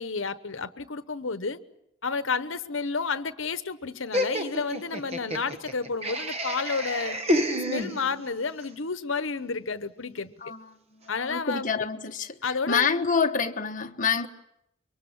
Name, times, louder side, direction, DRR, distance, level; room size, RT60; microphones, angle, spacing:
voice 1, 0.0-1.6 2.0-7.2 7.7-10.3 11.1-11.7 12.4-13.0, left 4 dB, 70° left, 1.1 m, -31 dB
Laughter, 4.1-8.4, equal, 30° right, 1.1 m, -29 dB
voice 2, 10.4-10.7 11.2-12.4 12.7-14.3, left 5 dB, 40° left, 1.1 m, -27 dB
25.5 x 23.5 x 7.2 m
head